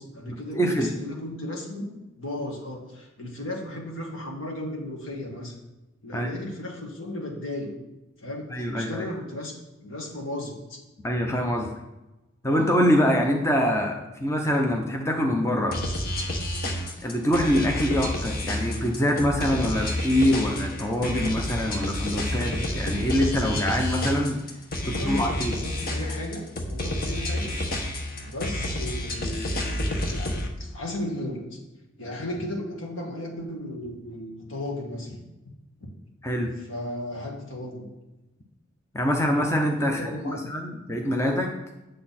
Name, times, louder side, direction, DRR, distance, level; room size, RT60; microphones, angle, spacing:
voice 1, 0.0-1.9 2.2-5.5 6.0-7.7 8.2-10.8 24.8-27.6 28.2-31.6 32.0-35.3 35.8-35.9 36.6-37.9 39.8-40.4, left 1 dB, 70° left, 0 dB, 1.9 m, -35 dB
voice 2, 0.5-0.9 6.1-6.3 8.5-9.1 11.0-11.7 12.4-15.8 17.0-24.4 24.8-25.5 36.2-36.5 38.9-41.5, equal, 15° left, 1 dB, 0.8 m, -24 dB
sound 1, 15.7-30.5, left 1 dB, 45° left, 1.2 m, -29 dB
8.3 x 7.6 x 4.3 m, 1.0 s
head